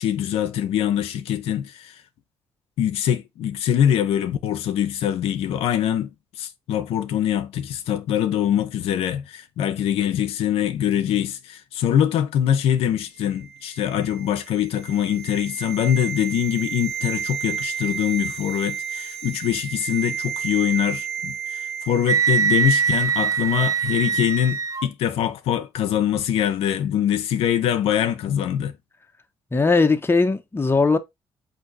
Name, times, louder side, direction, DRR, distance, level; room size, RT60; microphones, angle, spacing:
voice 1, 0.0-2.0 2.8-6.1 6.4-28.7, left 10 dB, 80° left, 0.5 m, -23 dB
sound 1, 13.4-22.6 22.9-23.0, right 8 dB, 75° right, 1.2 m, -32 dB
Wind instrument woodwind instrument, 22.1-24.9, right 6 dB, 35° right, 0.5 m, -22 dB
voice 2, 29.5-31.0, left 3 dB, 20° left, 0.8 m, -19 dB
4.3 x 2.8 x 3.9 m
supercardioid pair, 60°, 10 cm